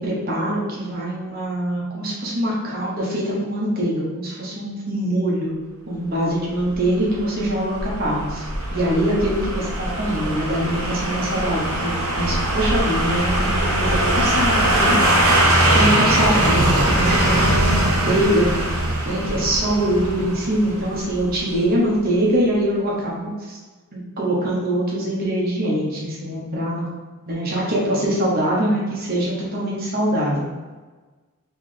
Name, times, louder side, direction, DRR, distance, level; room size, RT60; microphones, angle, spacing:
voice 1, 0.0-5.5 5.9-15.0 15.3-18.6 19.0-23.6 23.9-26.9 27.3-30.4, right 1 dB, 45° right, -5 dB, 0.9 m, -23 dB
sound 1, 6.7-21.6 21.9-22.0, right 1 dB, 80° right, 0.8 m, -21 dB
3.7 x 3.2 x 3.2 m, 1.3 s
head